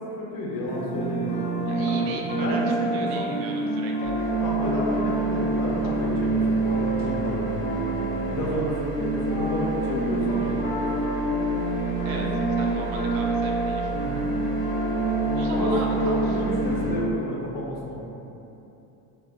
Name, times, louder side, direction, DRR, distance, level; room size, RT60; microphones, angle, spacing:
voice 1, 0.2-1.3 1.7-3.3 4.0-7.7 8.3-10.6 12.0-12.5 14.0-14.3 15.5-18.0, left 1 dB, 50° left, -4 dB, 0.7 m, -31 dB
sound 1, 0.6-16.8, right 2 dB, 15° left, 0.4 m, -27 dB
voice 2, 1.7-2.6 2.9-4.1 12.0-12.3 12.6-14.2 15.3-16.4, right 3 dB, 75° right, 0 dB, 0.6 m, -38 dB
sound 2, 4.0-17.0, right 4 dB, 30° right, 1.0 m, -34 dB
2.3 x 2.0 x 3.2 m, 2.9 s
cardioid pair, 125°, 45 cm